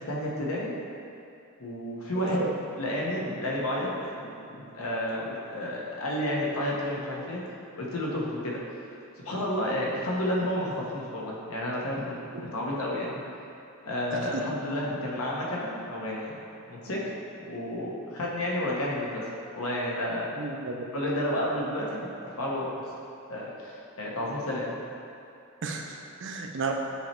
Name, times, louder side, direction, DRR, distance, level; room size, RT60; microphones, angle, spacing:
voice 1, 0.1-0.7 1.6-2.5 2.8-3.9 4.2-7.4 7.8-8.6 9.2-13.2 13.8-16.3 16.7-17.0 17.4-19.2 19.5-20.4 20.9-22.0 22.4-22.7 23.3-24.8, left 1 dB, 85° left, -4 dB, 1.1 m, -31 dB
voice 2, 2.2-2.5 12.3-12.4 14.1-14.4 20.4-20.9 25.6-26.7, right 4 dB, 60° right, 2 dB, 0.5 m, -33 dB
7.2 x 3.1 x 4.4 m, 2.7 s
head